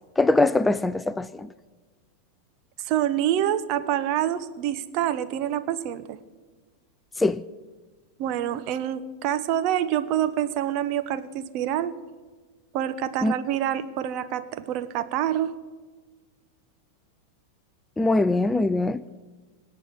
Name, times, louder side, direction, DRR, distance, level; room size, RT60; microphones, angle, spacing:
voice 1, 0.2-1.5 7.2-7.4 13.2-13.3 18.0-19.0, left 2 dB, 10° left, 0.4 m, -22 dB
voice 2, 2.8-6.2 8.2-11.9 12.7-15.5, right 11 dB, 40° right, 1.1 m, -26 dB
25.5 x 8.8 x 6.0 m
figure-of-eight pair, 90°, 0 cm